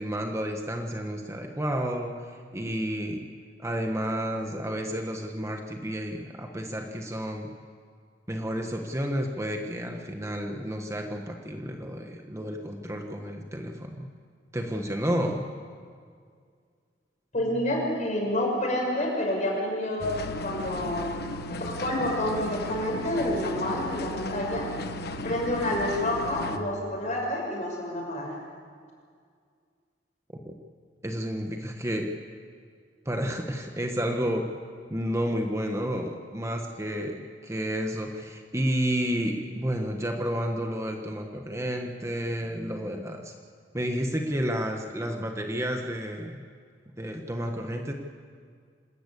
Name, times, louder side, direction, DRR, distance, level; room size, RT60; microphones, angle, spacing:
voice 1, 0.0-3.2 3.6-7.5 8.3-14.1 14.5-15.4 31.0-32.1 33.0-34.5 34.9-43.3 43.7-46.4 47.0-47.9, equal, 15° right, 3 dB, 1.2 m, -31 dB
voice 2, 17.3-21.1 21.7-24.7 25.2-28.3, left 1 dB, 45° left, -1 dB, 6.3 m, -28 dB
sound 1, 20.0-26.6, left 1 dB, 60° left, 1.2 m, -35 dB
26.5 x 13.5 x 8.4 m, 2.1 s
head